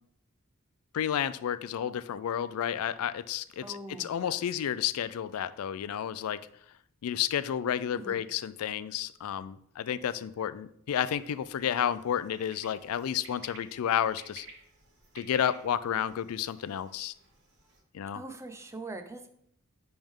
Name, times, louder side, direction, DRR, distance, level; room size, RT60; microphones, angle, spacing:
voice 1, 0.9-6.4 7.0-14.5 15.1-17.1 17.9-18.2, left 9 dB, 80° left, 15 dB, 0.3 m, -31 dB
voice 2, 3.6-4.4 7.9-8.2 18.1-19.3, right 2 dB, 15° right, 7 dB, 0.5 m, -42 dB
sound 1, 10.9-17.8, right 3 dB, 60° right, 1.5 m, -54 dB
10.5 x 3.5 x 3.6 m, 0.71 s
head